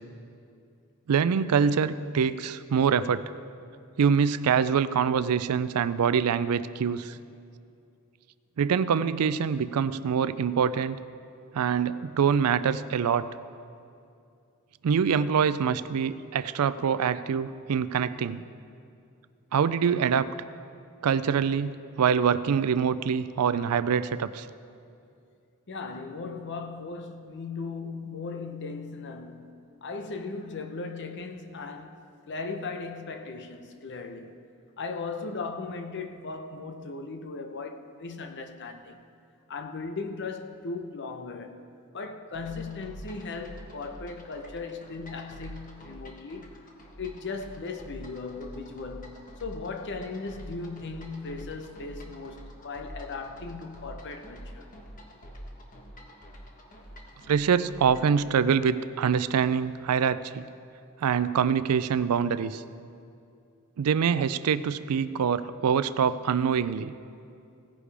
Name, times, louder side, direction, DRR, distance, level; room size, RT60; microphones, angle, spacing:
voice 1, 1.1-3.2 4.0-7.2 8.6-11.0 11.5-13.3 14.8-18.4 19.5-20.3 21.0-24.5 57.3-60.4 61.0-62.6 63.8-66.9, right 7 dB, 90° right, 0.4 m, -25 dB
voice 2, 25.7-32.0 32.3-34.4 34.8-39.0 39.5-41.6 41.9-46.5 47.0-54.7, left 4 dB, 55° left, 0.8 m, -37 dB
sound 1, 42.3-58.2, equal, 40° left, 1.2 m, -46 dB
17.0 x 9.8 x 3.4 m
head